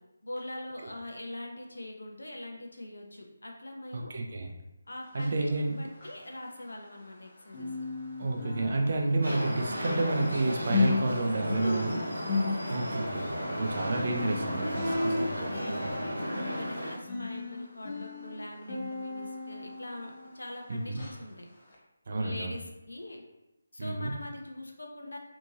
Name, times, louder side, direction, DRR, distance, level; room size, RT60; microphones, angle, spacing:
voice 1, 0.2-4.1 4.9-7.7 11.6-12.6 13.7-14.0 14.8-21.4 22.1-22.6 22.9-23.2 23.7-25.2, left 1 dB, 70° left, 1 dB, 0.5 m, -42 dB
voice 2, 3.9-4.5 5.1-5.8 8.2-12.0 12.7-15.3 15.7-15.9 20.7-21.0 22.1-22.6 23.8-24.1, right 2 dB, 45° right, 2 dB, 0.4 m, -30 dB
sound 1, 5.1-7.2 7.5-20.6 21.0-21.2 21.7-21.8, left 3 dB, 30° left, 0.7 m, -35 dB
sound 2, 9.2-17.0, equal, 75° right, 0.9 m, -34 dB
2.8 x 2.6 x 2.5 m, 0.94 s
figure-of-eight pair, 155°, 0 cm